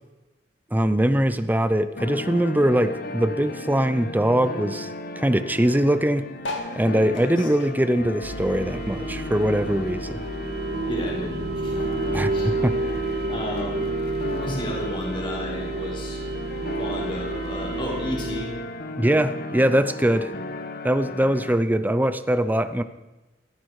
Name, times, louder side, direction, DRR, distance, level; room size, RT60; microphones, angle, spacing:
voice 1, 0.7-4.9 5.2-6.2 6.7-10.2 12.1-12.7 19.0-20.3 20.8-22.8, right 1 dB, 10° right, 11 dB, 0.6 m, -22 dB
sound 1, 2.0-21.6, left 2 dB, 55° left, 1.1 m, -35 dB
sound 2, 6.4-9.1 9.5-11.0 11.5-11.6 11.8-11.9 12.0-12.4 13.2-13.3, left 2 dB, 80° left, 2.8 m, -38 dB
sound 3, 8.2-18.4, right 2 dB, 60° right, 1.6 m, -30 dB
voice 2, 10.9-11.8 12.3-12.5 13.3-13.8 14.3-18.5, equal, 25° left, -3 dB, 4.3 m, -32 dB
17.0 x 14.5 x 4.8 m, 1.1 s
head